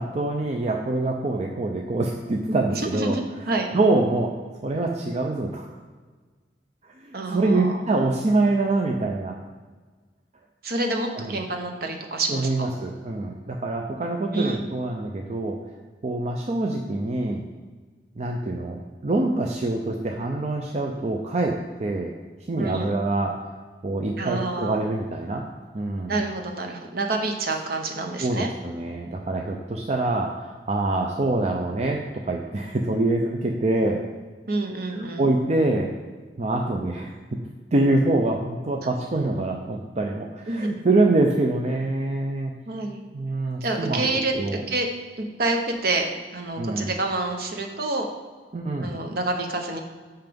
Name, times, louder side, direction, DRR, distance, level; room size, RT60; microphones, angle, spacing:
voice 1, 0.0-4.4 4.6-5.7 7.0-9.4 11.1-11.4 12.3-15.6 16.0-17.4 18.2-22.1 22.5-23.4 23.8-25.5 25.7-26.1 28.2-34.0 35.2-35.9 36.4-37.1 37.7-42.5 43.1-44.6 46.6-46.9 48.5-49.0, right 2 dB, 40° right, 1 dB, 0.5 m, -25 dB
voice 2, 2.5-3.7 7.1-7.9 10.6-12.7 14.3-14.6 22.6-22.9 24.2-24.8 26.1-28.5 34.5-35.3 40.5-40.7 42.7-43.0 43.6-44.9 45.2-48.1 48.8-49.8, right 2 dB, 55° right, 4 dB, 0.9 m, -28 dB
5.7 x 5.7 x 5.2 m, 1.4 s
head